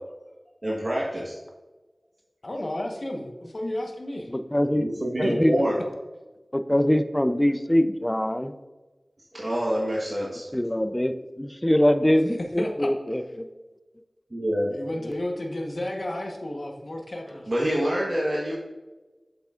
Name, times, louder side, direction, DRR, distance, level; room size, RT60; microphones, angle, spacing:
voice 1, 0.6-1.3 4.8-5.8 9.3-10.5 14.3-14.7 17.5-18.5, equal, 50° right, -5 dB, 1.2 m, -26 dB
voice 2, 2.4-4.3 5.2-5.4 12.6-12.9 14.7-17.5, left 1 dB, 65° left, 2 dB, 1.1 m, -32 dB
voice 3, 4.3-5.6 6.5-8.5 10.5-13.5 15.0-15.1, left 1 dB, 15° left, 10 dB, 0.5 m, -23 dB
7.9 x 6.8 x 2.4 m, 1.2 s
wide cardioid pair, 45°, 0 cm